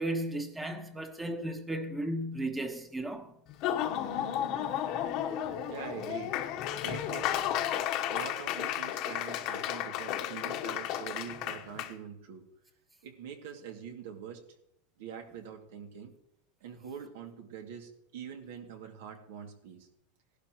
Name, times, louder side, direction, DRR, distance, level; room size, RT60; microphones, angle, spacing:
voice 1, 0.0-3.3, right 1 dB, 10° right, 1.3 m, -35 dB
Laughter / Applause, 3.5-11.9, left 10 dB, 50° left, 1.2 m, -33 dB
voice 2, 5.7-6.3 6.8-7.4 8.1-12.4 13.0-14.4 15.0-16.1 16.6-19.9, right 7 dB, 75° right, 2.4 m, -44 dB
17.0 x 11.5 x 3.1 m
supercardioid pair, 140°, 0 cm